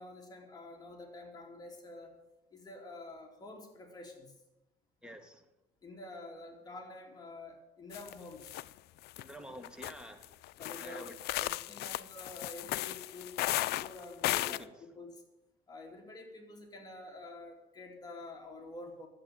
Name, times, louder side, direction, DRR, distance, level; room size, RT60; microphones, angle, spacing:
voice 1, 0.0-2.1 2.5-4.3 5.8-8.6 10.6-11.1 11.4-14.6 14.9-15.2 15.7-19.1, left 2 dB, 25° left, 1 dB, 3.1 m, -48 dB
voice 2, 5.0-5.4 9.2-10.3 10.8-11.5 14.3-14.7, equal, 5° right, 6 dB, 1.6 m, -48 dB
sound 1, 7.9-8.1 8.4-8.7 9.1-9.2 9.6-14.6, left 17 dB, 75° left, 0.4 m, -35 dB
11.5 x 8.5 x 8.8 m, 0.95 s
cardioid pair, 110°, 17 cm